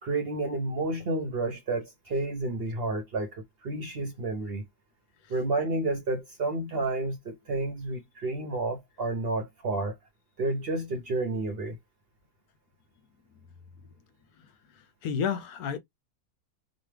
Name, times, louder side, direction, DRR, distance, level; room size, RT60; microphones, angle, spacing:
voice 1, 0.0-4.6 5.3-10.0 10.4-11.8, right 2 dB, 55° right, 0.7 m, -30 dB
voice 2, 14.4-15.8, left 7 dB, 80° left, 1.1 m, -33 dB
3.1 x 2.2 x 3.2 m
omnidirectional pair, 1.6 m